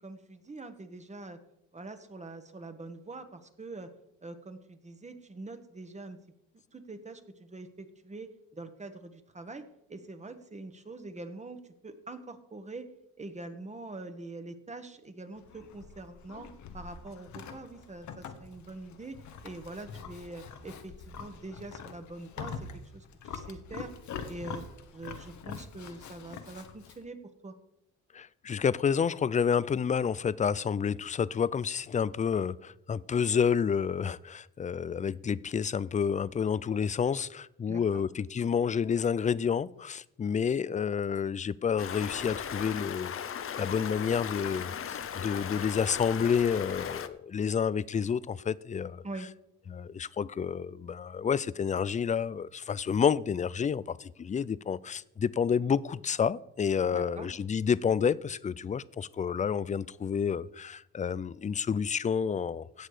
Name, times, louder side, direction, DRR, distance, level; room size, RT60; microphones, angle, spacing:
voice 1, 0.0-1.4 1.7-3.9 4.2-6.2 6.5-12.9 13.2-16.5 16.7-22.7 22.9-23.9 24.3-24.6 24.9-27.6 37.7-38.0 49.0-49.3 56.9-57.3, right 2 dB, 25° right, 1.3 m, -44 dB
Livestock farm animals working animals, 15.4-27.0, left 6 dB, 70° left, 1.3 m, -44 dB
voice 2, 28.1-43.2 43.6-49.0 49.7-62.9, left 7 dB, 25° left, 0.4 m, -29 dB
Stream, 41.8-47.1, left 8 dB, 45° left, 0.8 m, -37 dB
17.0 x 6.5 x 4.9 m
cardioid pair, 90°, 30 cm